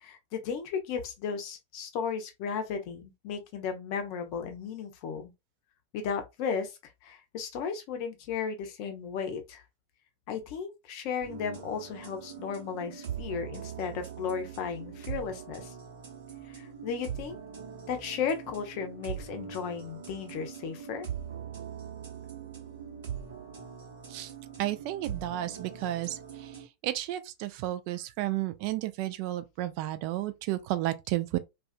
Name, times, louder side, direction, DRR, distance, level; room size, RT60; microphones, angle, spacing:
voice 1, 0.0-5.3 5.9-9.6 10.3-15.7 16.5-17.4 17.9-21.1, left 6 dB, 45° left, 0.6 m, -35 dB
sound 1, 11.2-26.6, right 8 dB, 60° right, 1.0 m, -42 dB
voice 2, 24.6-26.5 26.8-31.4, right 15 dB, 45° right, 0.3 m, -32 dB
2.4 x 2.3 x 2.4 m
figure-of-eight pair, 90°, 0 cm